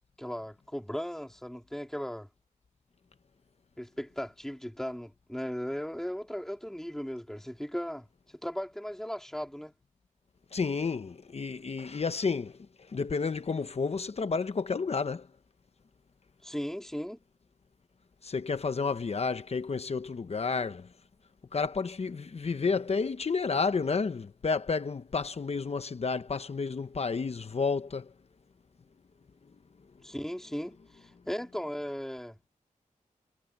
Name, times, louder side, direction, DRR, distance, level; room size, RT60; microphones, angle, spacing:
voice 1, 0.2-2.3 3.8-8.1 8.4-9.7 16.4-17.2 30.0-32.4, equal, 5° left, 3.4 m, -37 dB
voice 2, 10.5-12.6 12.9-15.3 18.2-20.9 21.5-28.1, left 4 dB, 50° left, 0.9 m, -31 dB
wide cardioid pair, 100°, 14 cm